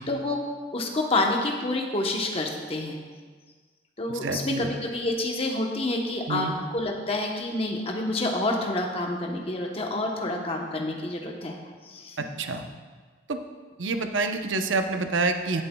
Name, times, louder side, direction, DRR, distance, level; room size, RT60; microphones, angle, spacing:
voice 1, 0.0-3.0 4.0-6.5 6.7-11.6 11.8-12.2, left 2 dB, 30° left, 1 dB, 0.9 m, -28 dB
voice 2, 4.1-4.7 6.3-6.6 12.2-12.6 13.3-13.4 13.8-15.6, right 3 dB, 75° right, 6 dB, 0.7 m, -27 dB
17.0 x 8.0 x 2.3 m, 1.5 s
head